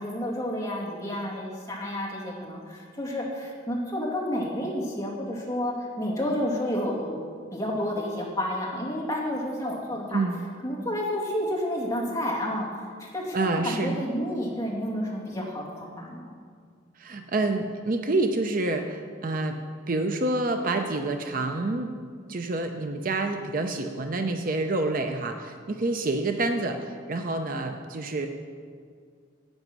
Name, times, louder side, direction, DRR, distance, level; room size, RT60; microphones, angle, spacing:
voice 1, 0.0-7.2 7.5-10.2 10.6-16.2, equal, 15° left, -4 dB, 2.3 m, -30 dB
voice 2, 13.3-14.0 17.0-19.6 19.9-21.9 22.3-28.3, right 2 dB, 45° right, 6 dB, 0.6 m, -27 dB
10.5 x 8.7 x 6.1 m, 2.1 s
head